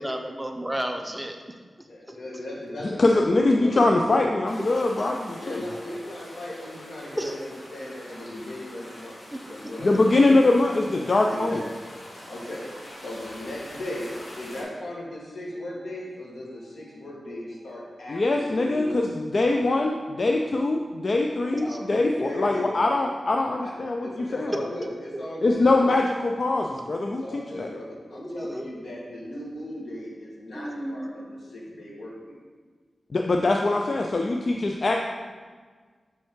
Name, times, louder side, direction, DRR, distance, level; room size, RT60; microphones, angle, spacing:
voice 1, 0.0-1.4 1.8-2.2 5.8-6.2 7.2-7.4 9.3-9.4 21.5-21.8 28.1-28.6 30.5-31.2, right 1 dB, 10° right, 3 dB, 0.6 m, -33 dB
voice 2, 1.9-4.0 5.4-10.4 11.2-11.7 12.2-12.7 13.0-14.1 14.4-19.1 21.6-22.7 23.6-23.7 24.0-25.9 27.0-32.3, left 1 dB, 85° left, -4 dB, 1.5 m, -37 dB
voice 3, 3.0-5.6 9.8-11.6 18.1-24.5 25.4-27.7 33.1-35.0, left 2 dB, 50° left, 2 dB, 0.4 m, -23 dB
sound 1, 4.5-14.6, left 1 dB, 70° left, 1.7 m, -44 dB
5.6 x 5.2 x 3.7 m, 1.5 s
wide cardioid pair, 100°, 0 cm